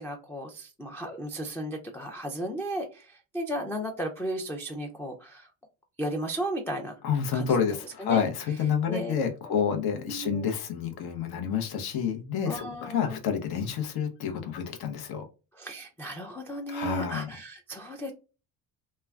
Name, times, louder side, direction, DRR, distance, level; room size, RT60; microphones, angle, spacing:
voice 1, 0.0-5.5 6.0-6.9 7.3-7.5 8.0-8.2 8.9-9.1 9.5-9.6 10.0-10.5 12.5-13.2 15.5-18.1, right 1 dB, 5° left, 0 dB, 0.4 m, -35 dB
voice 2, 7.0-15.2 16.7-17.3, left 7 dB, 50° left, 5 dB, 0.7 m, -29 dB
2.2 x 2.2 x 3.4 m, 0.32 s
supercardioid pair, 75°, 47 cm